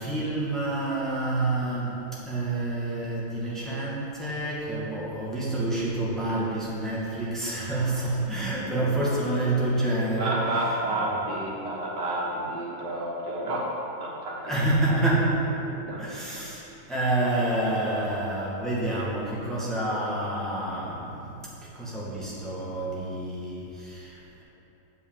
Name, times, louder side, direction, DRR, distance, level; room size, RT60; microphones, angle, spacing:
voice 1, 0.0-10.4 14.4-15.4 16.0-24.4, right 2 dB, ahead, -7 dB, 1.7 m, -28 dB
voice 2, 10.2-13.6 14.0-15.0 15.6-16.0, right 1 dB, 90° right, -4 dB, 2.2 m, -30 dB
7.9 x 5.5 x 7.4 m, 2.9 s
omnidirectional pair, 1.9 m